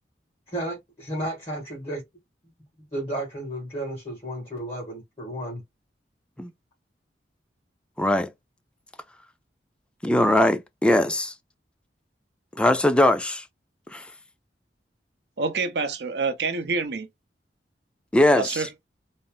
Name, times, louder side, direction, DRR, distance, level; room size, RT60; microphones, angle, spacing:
voice 1, 0.5-2.0 2.9-5.6, right 1 dB, 35° left, 1.8 m, -33 dB
voice 2, 8.0-8.3 10.0-11.3 12.6-13.4 13.9-14.0 18.1-18.6, left 1 dB, 5° left, 0.3 m, -20 dB
voice 3, 15.4-17.1 18.4-18.7, right 4 dB, 65° right, 0.6 m, -27 dB
4.1 x 2.0 x 3.7 m
head